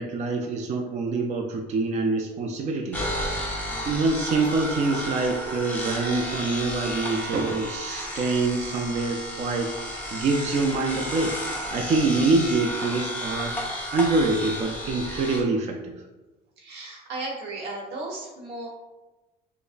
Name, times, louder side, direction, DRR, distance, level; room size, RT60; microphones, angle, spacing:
voice 1, 0.0-3.0 3.8-11.4 11.7-13.5 13.9-15.9, right 3 dB, 45° right, 2 dB, 0.4 m, -25 dB
sound 1, 2.9-15.4, equal, 10° left, 0.8 m, -32 dB
voice 2, 3.7-4.1 16.6-18.7, right 2 dB, 85° right, -2 dB, 1.0 m, -36 dB
4.9 x 2.1 x 2.4 m, 1.1 s
cardioid pair, 110°, 17 cm